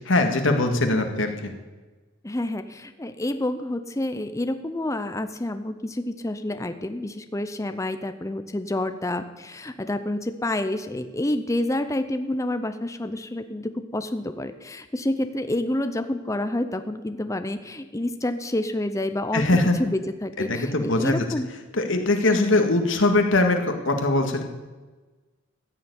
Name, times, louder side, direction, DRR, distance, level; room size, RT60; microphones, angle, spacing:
voice 1, 0.1-1.5 19.3-19.8 20.4-21.2 21.8-24.4, left 2 dB, 65° left, 5 dB, 1.8 m, -21 dB
voice 2, 2.2-19.4 19.8-21.5 22.2-22.5, left 1 dB, 15° left, 9 dB, 0.6 m, -28 dB
15.0 x 7.0 x 9.6 m, 1.2 s
head